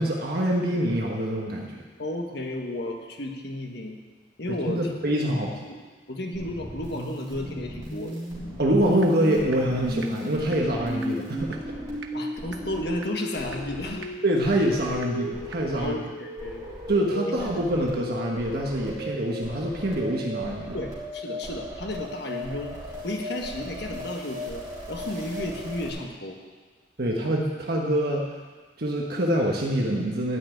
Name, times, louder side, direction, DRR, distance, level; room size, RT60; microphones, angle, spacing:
voice 1, 0.0-1.8 4.6-5.5 8.6-11.6 14.2-15.9 16.9-20.8 27.0-28.2 28.8-30.4, right 1 dB, 55° right, -1 dB, 1.4 m, -25 dB
voice 2, 2.0-4.0 4.4-4.9 5.3-5.8 6.1-8.2 12.1-14.1 15.7-16.7 17.3-17.5 20.7-22.7 23.0-24.6 24.9-26.4, left 1 dB, 65° left, 2 dB, 1.6 m, -33 dB
sound 1, 6.3-25.9, equal, 20° right, 4.0 m, -36 dB
sound 2, 9.0-9.1 9.5-9.6 10.0-10.1 10.5-10.6 11.0-11.1 11.5-11.6 12.0-12.1 12.5-12.6 13.0-13.1 13.5-13.6 14.0-14.1 14.5-14.6 15.0-15.1 15.5-15.6, right 8 dB, 80° right, 1.0 m, -40 dB
12.5 x 6.1 x 9.2 m, 1.4 s
head